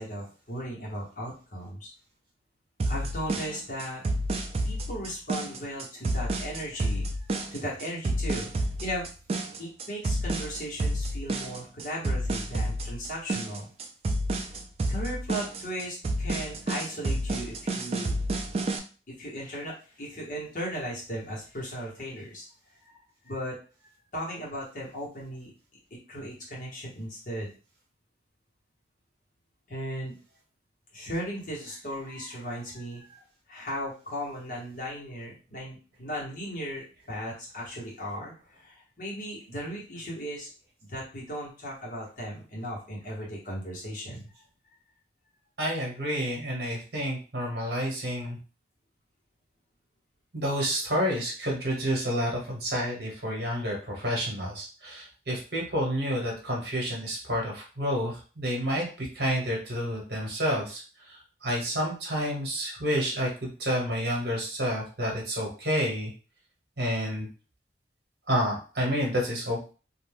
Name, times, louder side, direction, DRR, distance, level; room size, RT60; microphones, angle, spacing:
voice 1, 0.0-1.9 2.9-4.0 4.6-7.2 7.5-8.5 8.8-9.0 9.6-13.7 14.9-18.1 19.2-22.4 22.8-23.0 23.2-23.6 24.1-25.5 26.1-27.5 29.7-30.2 30.9-40.5 40.9-44.3, equal, 45° left, -4 dB, 1.1 m, -37 dB
sound 1, 2.8-18.8, right 1 dB, 35° right, 0.3 m, -30 dB
voice 2, 45.6-48.4 50.3-66.1 66.8-67.3 68.3-69.7, equal, 60° right, -2 dB, 1.1 m, -29 dB
2.5 x 2.2 x 3.3 m, 0.36 s
head